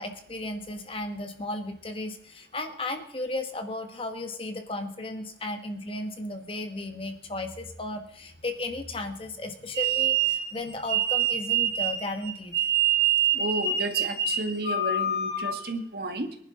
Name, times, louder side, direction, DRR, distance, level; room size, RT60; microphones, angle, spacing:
voice 1, 0.0-12.6, left 2 dB, 30° left, 6 dB, 1.4 m, -35 dB
sound 1, 9.7-15.7, right 7 dB, 80° left, 4.2 m, -26 dB
voice 2, 13.3-16.4, right 2 dB, 60° right, 6 dB, 1.6 m, -32 dB
23.5 x 11.0 x 3.8 m, 0.74 s
head